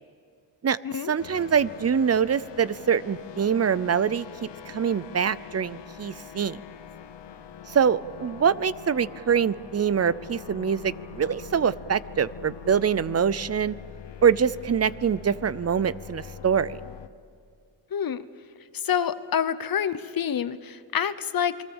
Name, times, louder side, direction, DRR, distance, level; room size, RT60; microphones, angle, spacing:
voice 1, 1.1-6.6 7.7-13.8 14.2-16.8, right 7 dB, 35° right, 18 dB, 0.6 m, -24 dB
sound 1, 1.2-17.1, left 7 dB, 75° left, 1.3 m, -43 dB
voice 2, 17.9-18.3 18.7-21.6, left 8 dB, 55° left, 13 dB, 0.9 m, -27 dB
28.5 x 22.0 x 7.2 m, 2.3 s
wide cardioid pair, 125°, 43 cm